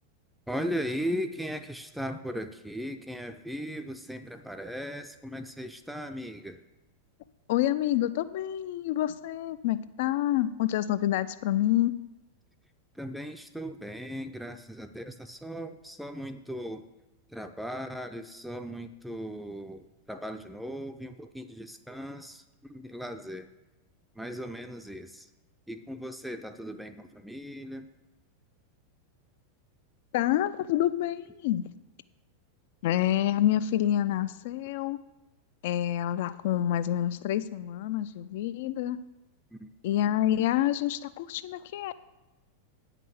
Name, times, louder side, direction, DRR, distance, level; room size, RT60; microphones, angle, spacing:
voice 1, 0.5-6.6 12.9-16.9 17.3-23.5 24.2-25.3 25.7-27.9 39.5-39.7, equal, ahead, 8 dB, 0.5 m, -37 dB
voice 2, 7.5-12.0 30.1-31.7 32.8-35.0 35.6-39.0 39.8-41.9, left 12 dB, 50° left, 15 dB, 0.4 m, -27 dB
9.0 x 5.9 x 6.8 m, 1.0 s
figure-of-eight pair, 90°, 0 cm